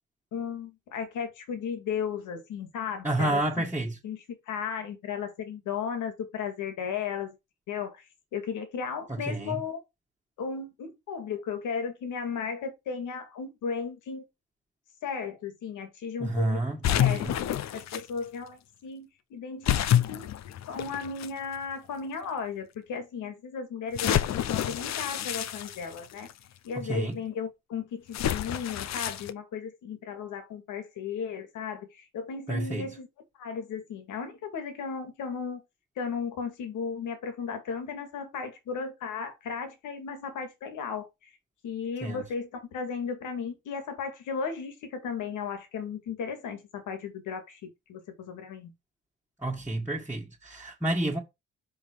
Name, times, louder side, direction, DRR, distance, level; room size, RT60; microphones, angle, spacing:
voice 1, 0.3-3.7 4.0-4.2 4.5-7.4 7.7-9.8 10.4-14.3 15.0-16.6 16.9-17.2 17.7-20.3 20.7-26.3 26.6-33.1 33.4-35.6 36.0-41.3 41.6-48.7, left 6 dB, 80° left, 2.2 m, -35 dB
voice 2, 3.0-4.0 9.1-9.6 16.2-17.3 26.8-27.1 32.5-32.9 42.0-42.2 49.4-51.2, right 1 dB, 5° right, 1.7 m, -30 dB
sound 1, 16.8-18.0 19.6-21.3 22.0-22.1 23.9-26.3 28.1-29.3, left 11 dB, 65° left, 0.7 m, -28 dB
5.7 x 5.0 x 4.7 m
cardioid pair, 90°, 30 cm